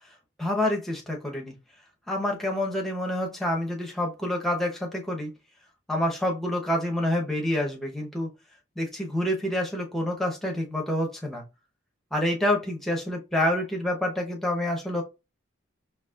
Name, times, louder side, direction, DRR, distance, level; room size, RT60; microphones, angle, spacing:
voice 1, 0.4-1.5 2.1-5.3 5.9-8.3 8.8-11.4 12.1-15.0, left 1 dB, ahead, 0 dB, 0.8 m, -27 dB
4.1 x 2.9 x 2.3 m, 0.26 s
head